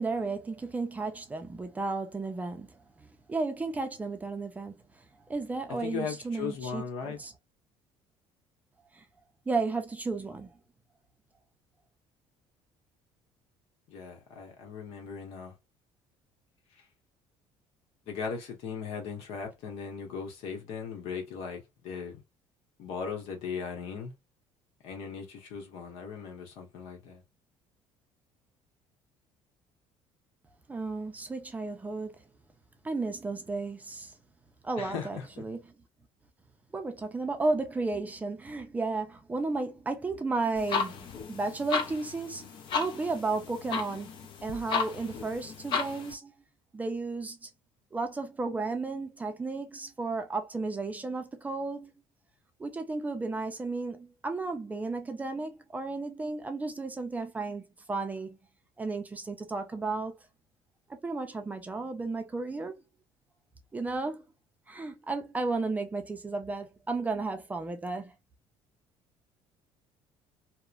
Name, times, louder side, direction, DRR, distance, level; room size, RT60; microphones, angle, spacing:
voice 1, 0.0-4.7 5.3-7.3 8.9-9.0 9.5-10.5 30.7-32.2 32.8-34.1 34.6-35.6 36.7-46.3 46.7-47.5 47.9-51.9 52.6-57.6 57.9-58.4 58.8-60.2 61.0-62.8 63.7-64.2 64.7-68.1, right 3 dB, 15° right, 0.5 m, -33 dB
voice 2, 5.8-7.2 13.9-15.5 18.1-22.2 22.8-24.1 24.8-27.2 34.8-35.4, left 6 dB, 75° left, 1.0 m, -38 dB
sound 1, 40.6-46.1, left 6 dB, 50° left, 0.6 m, -34 dB
2.9 x 2.1 x 2.4 m
cardioid pair, 135°, 10 cm